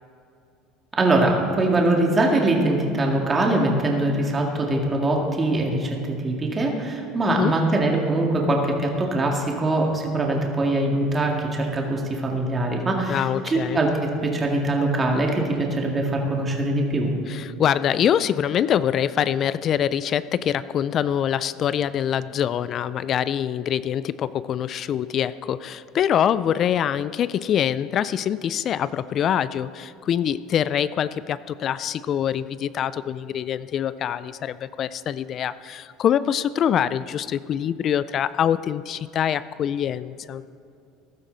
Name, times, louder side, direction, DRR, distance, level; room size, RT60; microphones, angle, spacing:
voice 1, 1.0-6.0 6.2-17.1, right 2 dB, 25° right, 0 dB, 2.1 m, -22 dB
voice 2, 13.1-13.8 17.3-40.4, left 9 dB, 45° left, 16 dB, 0.4 m, -24 dB
15.0 x 12.5 x 4.0 m, 2.6 s
supercardioid pair, 110°, 0 cm